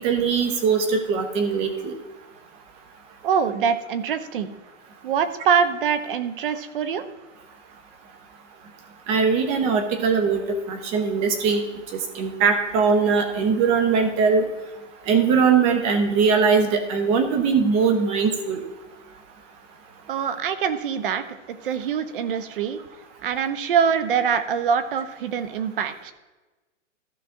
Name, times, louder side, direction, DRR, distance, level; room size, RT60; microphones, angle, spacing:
voice 1, 0.0-1.9 9.1-10.4 10.7-11.6 12.1-14.4 15.1-18.6, right 5 dB, 15° right, 7 dB, 0.8 m, -21 dB
voice 2, 3.2-4.5 5.0-7.1 20.1-21.2 21.6-22.8 23.2-26.1, right 7 dB, 45° right, 12 dB, 0.8 m, -24 dB
14.5 x 5.8 x 3.7 m, 1.2 s
hypercardioid pair, 155°, 37 cm